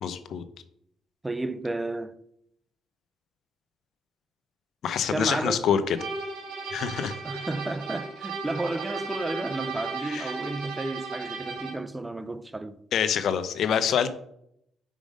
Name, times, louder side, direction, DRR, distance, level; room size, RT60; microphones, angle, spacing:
voice 1, 0.0-0.4 4.8-6.0 6.7-7.1 10.0-10.3 12.9-14.1, left 8 dB, 70° left, 0.6 m, -26 dB
voice 2, 1.2-2.2 5.1-5.7 7.2-12.8, right 2 dB, 15° right, 0.4 m, -32 dB
sound 1, 6.0-11.9, right 4 dB, 80° right, 1.8 m, -35 dB
5.1 x 5.1 x 5.2 m
cardioid pair, 90°, 0 cm